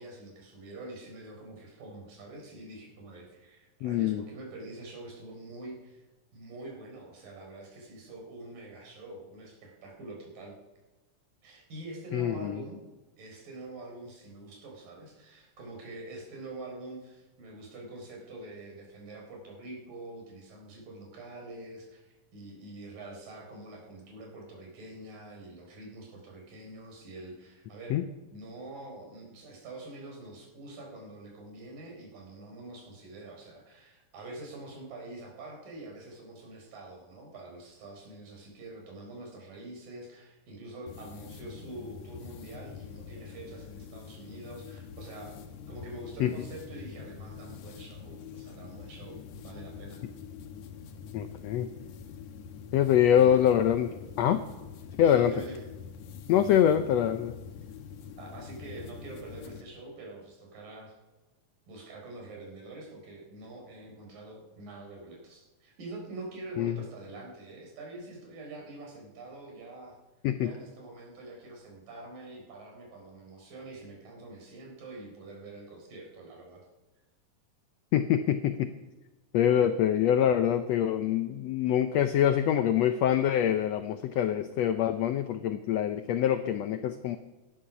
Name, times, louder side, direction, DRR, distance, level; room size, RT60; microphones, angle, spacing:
voice 1, 0.0-6.0 6.3-10.5 11.4-12.8 13.2-28.0 28.3-45.3 45.7-49.2 49.4-50.0 53.2-53.3 55.0-55.6 58.2-60.9 61.7-70.0 70.4-76.7, right 2 dB, 80° right, 0 dB, 5.7 m, -45 dB
voice 2, 3.8-4.2 12.1-12.6 27.9-28.0 46.2-46.3 51.1-51.7 52.7-54.4 55.0-55.3 56.3-57.3 66.6-66.8 70.2-70.5 77.9-78.7 79.3-87.2, left 10 dB, 90° left, 10 dB, 1.4 m, -25 dB
sound 1, 40.9-59.6, left 7 dB, 65° left, 2.4 m, -45 dB
18.0 x 13.0 x 6.0 m, 1.1 s
omnidirectional pair, 3.9 m